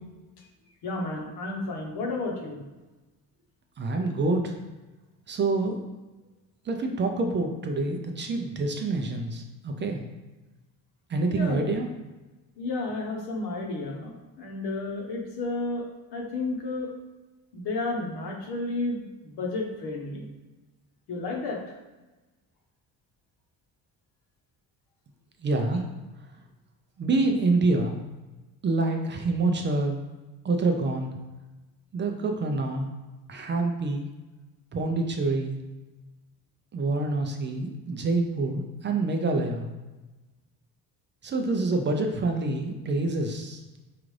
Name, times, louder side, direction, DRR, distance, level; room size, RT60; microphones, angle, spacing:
voice 1, 0.8-2.6 11.3-11.6 12.6-16.9 17.5-20.3 21.1-21.6, left 2 dB, 80° left, 0 dB, 1.0 m, -32 dB
voice 2, 3.8-4.5 5.3-5.8 6.7-10.0 11.1-11.9 25.4-25.8 27.0-28.0 28.6-30.0 30.4-31.1 31.9-32.9 33.3-34.1 34.7-35.6 36.7-39.6 41.2-43.6, right 3 dB, 30° right, 4 dB, 0.4 m, -26 dB
4.7 x 2.5 x 3.2 m, 1.1 s
cardioid pair, 135°, 38 cm